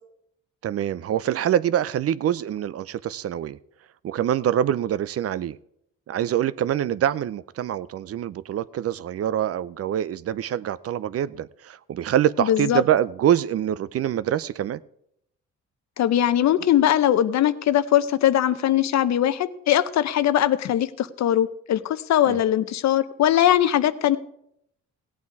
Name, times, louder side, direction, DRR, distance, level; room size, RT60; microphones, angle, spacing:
voice 1, 0.6-3.6 4.0-5.6 6.1-14.8 22.3-22.4, right 10 dB, 50° right, 0.5 m, -25 dB
voice 2, 12.4-12.8 16.0-24.2, left 11 dB, 65° left, 0.7 m, -21 dB
17.0 x 8.4 x 4.7 m
cardioid pair, 90°, 30 cm